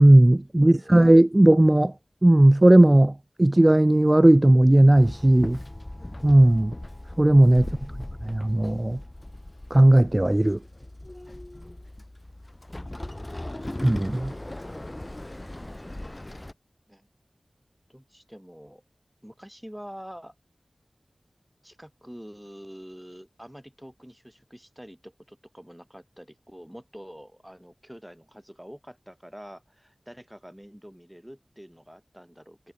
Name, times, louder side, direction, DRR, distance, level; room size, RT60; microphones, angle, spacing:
voice 1, 0.0-1.9 2.2-5.6 6.2-6.7 7.2-7.7 8.2-9.0 9.7-10.6 13.8-14.3, right 1 dB, 25° right, 0.5 m, -16 dB
voice 2, 0.6-1.0 13.0-13.4 16.9-17.1 17.9-18.8 19.2-20.3 21.6-32.7, equal, 5° right, 7.3 m, -46 dB
Walk footsteps / Chatter / Hiss, 4.9-16.5, left 1 dB, 25° left, 6.3 m, -38 dB
wide cardioid pair, 60°, 0 cm